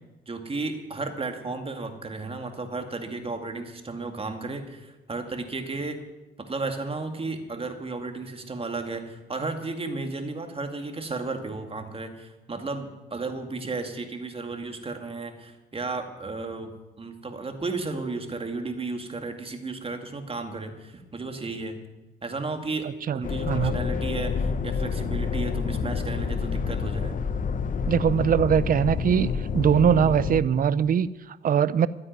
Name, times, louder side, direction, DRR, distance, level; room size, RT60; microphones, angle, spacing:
voice 1, 0.3-6.0 6.4-16.7 17.0-21.8 22.2-27.2, right 3 dB, 30° right, 5 dB, 2.2 m, -33 dB
sound 1, 23.2-30.4, left 5 dB, 40° left, 0.9 m, -28 dB
voice 2, 27.9-31.9, right 8 dB, 45° right, 18 dB, 0.6 m, -22 dB
12.5 x 9.8 x 9.4 m, 1.1 s
cardioid pair, 90°, 20 cm